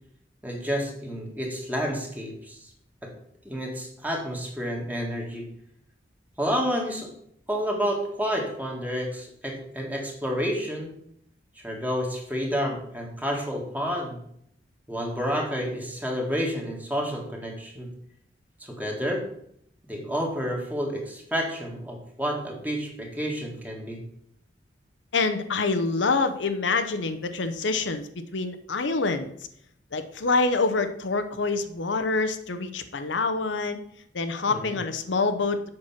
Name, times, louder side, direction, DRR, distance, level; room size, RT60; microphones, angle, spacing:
voice 1, 0.4-2.7 3.0-3.1 3.4-5.5 6.4-7.1 7.5-10.9 11.6-14.2 14.9-17.9 18.6-19.2 19.9-24.0 34.4-34.7, equal, 10° right, 0 dB, 1.7 m, -30 dB
voice 2, 25.1-28.0 28.3-29.3 29.9-33.8 34.1-35.7, left 3 dB, 80° left, 9 dB, 0.8 m, -26 dB
7.7 x 6.0 x 5.8 m, 0.70 s
head